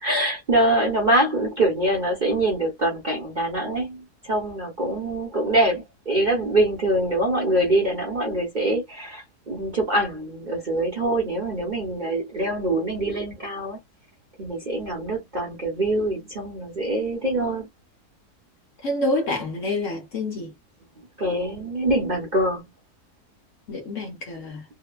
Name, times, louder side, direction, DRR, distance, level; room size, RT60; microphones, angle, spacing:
voice 1, 0.0-13.8 14.4-17.7 21.2-22.6, right 1 dB, 40° right, 0.8 m, -24 dB
voice 2, 18.8-20.5 23.7-24.6, left 2 dB, 60° left, 0.9 m, -27 dB
2.9 x 2.1 x 2.2 m
omnidirectional pair, 1.7 m